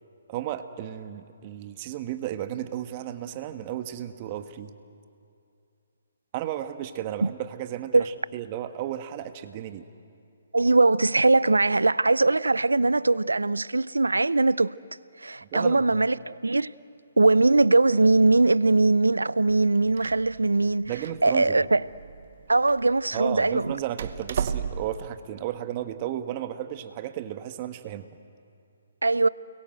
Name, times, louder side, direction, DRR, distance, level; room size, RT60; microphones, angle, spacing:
voice 1, 0.3-4.7 6.3-9.9 15.5-16.0 20.9-21.6 23.1-28.1, right 12 dB, 35° right, 1.5 m, -34 dB
voice 2, 10.5-14.8 15.2-16.7 17.2-20.9 21.2-21.9 22.5-23.8 29.0-29.3, right 3 dB, 90° right, 0.5 m, -21 dB
Door, 19.5-25.1, right 7 dB, 55° right, 1.1 m, -36 dB
29.5 x 22.0 x 7.9 m
figure-of-eight pair, 140°, 0 cm